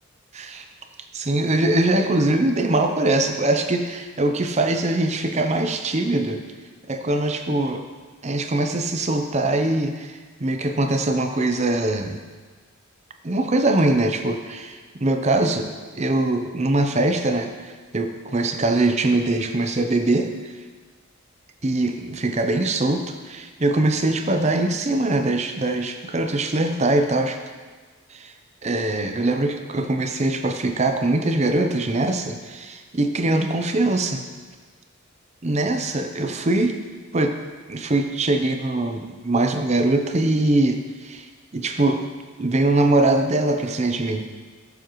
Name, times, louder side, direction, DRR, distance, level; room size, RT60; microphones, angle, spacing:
voice 1, 0.3-0.6 1.1-6.4 6.9-7.8 8.2-12.2 13.2-20.3 21.6-27.4 28.1-28.3 28.6-34.2 35.4-36.8 37.1-37.4 37.7-41.3 41.5-42.1 42.4-44.2, right 2 dB, 30° right, 6 dB, 0.6 m, -22 dB
13.0 x 7.3 x 3.1 m, 1.4 s
head